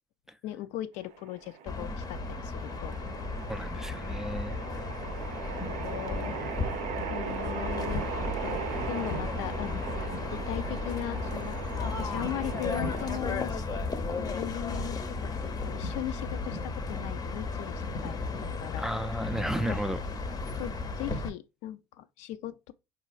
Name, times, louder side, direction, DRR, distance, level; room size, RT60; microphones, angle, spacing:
voice 1, 0.4-2.9 5.7-6.4 7.1-9.8 10.3-13.9 14.2-18.9 19.6-19.8 20.6-22.7, left 13 dB, 70° left, 0.4 m, -39 dB
sound 1, 1.0-13.2, right 8 dB, 65° right, 0.5 m, -39 dB
sound 2, 1.7-21.3, left 3 dB, 30° left, 0.6 m, -34 dB
voice 2, 3.5-4.6 18.8-20.0, equal, 5° right, 0.3 m, -33 dB
4.2 x 2.3 x 2.3 m
supercardioid pair, 105°, 12 cm